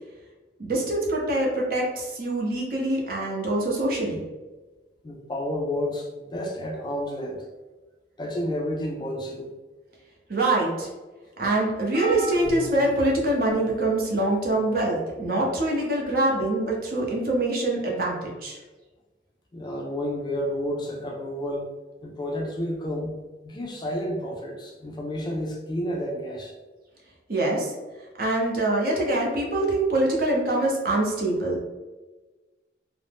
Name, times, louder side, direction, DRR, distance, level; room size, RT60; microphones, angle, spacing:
voice 1, 0.6-4.2 10.3-10.9 11.4-18.6 27.3-27.7 28.2-31.6, right 2 dB, 55° right, -2 dB, 0.7 m, -24 dB
voice 2, 5.0-7.4 8.2-9.5 19.5-21.7 22.0-23.2 23.4-26.5, equal, 25° left, 0 dB, 0.3 m, -30 dB
sound 1, 11.9-13.7 14.5-14.7 16.0-16.1, equal, 80° right, 1.1 m, -36 dB
2.6 x 2.0 x 3.3 m, 1.2 s
head